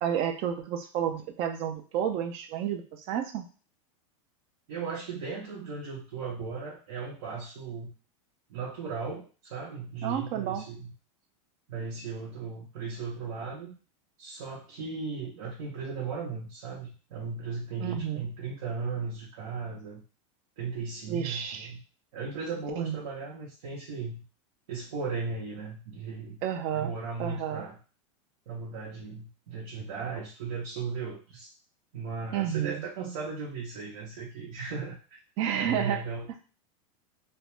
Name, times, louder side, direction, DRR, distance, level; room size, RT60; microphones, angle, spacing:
voice 1, 0.0-3.4 10.0-10.6 17.8-18.3 21.1-21.7 22.8-22.9 26.4-26.9 27.2-27.6 32.3-32.8 35.4-36.0, right 9 dB, 35° right, 6 dB, 0.4 m, -30 dB
voice 2, 4.7-7.9 8.5-10.9 11.7-13.7 14.2-20.0 20.6-21.8 22.1-24.2 24.7-26.4 26.7-27.8 28.5-31.5 31.9-35.0 35.5-36.4, right 4 dB, 75° right, -3 dB, 0.7 m, -36 dB
2.3 x 2.1 x 3.0 m, 0.36 s
supercardioid pair, 155°, 17 cm